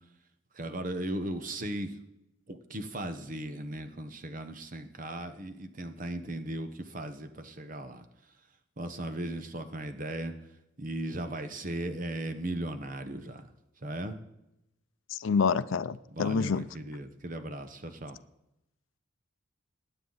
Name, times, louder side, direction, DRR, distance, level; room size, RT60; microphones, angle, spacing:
voice 1, 0.5-2.0 2.5-8.0 8.8-10.3 10.8-13.5 13.8-14.2 16.1-18.2, right 1 dB, 40° right, 9 dB, 1.0 m, -37 dB
voice 2, 15.1-16.6, left 5 dB, 75° left, 15 dB, 0.4 m, -27 dB
20.5 x 9.0 x 4.0 m, 0.88 s
head